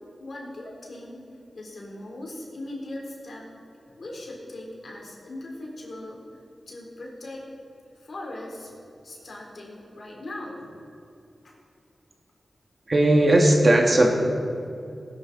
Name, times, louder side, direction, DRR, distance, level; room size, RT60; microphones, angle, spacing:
voice 1, 0.2-1.2 1.5-3.5 3.9-6.2 6.7-7.4 7.9-8.7 9.0-10.7 11.4-11.5, left 1 dB, 65° left, -2 dB, 3.5 m, -39 dB
voice 2, 12.9-14.1, right 1 dB, 45° right, 1 dB, 2.0 m, -17 dB
18.5 x 11.0 x 4.1 m, 2.5 s
wide cardioid pair, 75°, 0 cm